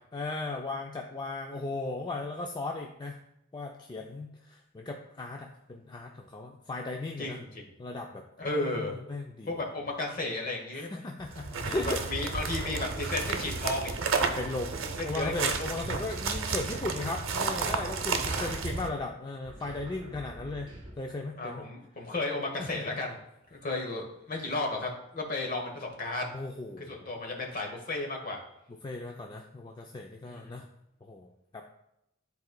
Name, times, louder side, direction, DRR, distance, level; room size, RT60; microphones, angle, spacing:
voice 1, 0.1-3.2 3.5-7.4 7.8-9.6 10.7-12.0 12.6-12.7 14.4-20.7 21.0-21.6 22.6-22.8 26.3-27.1 28.8-30.6 31.0-31.6, left 2 dB, 20° left, 2 dB, 0.3 m, -37 dB
voice 2, 7.2-7.7 8.4-8.9 9.5-11.0 11.5-13.9 14.9-15.5 18.2-18.5 21.4-23.2 23.5-26.3 26.9-28.4 30.3-30.6, left 2 dB, 45° left, 1 dB, 1.2 m, -34 dB
sound 1, 11.2-18.9, right 4 dB, 85° right, 0.7 m, -32 dB
sound 2, 13.2-14.9 15.3-17.0 17.4-19.1 19.4-21.2, equal, 25° right, 1.5 m, -47 dB
10.5 x 4.0 x 2.2 m, 0.83 s
head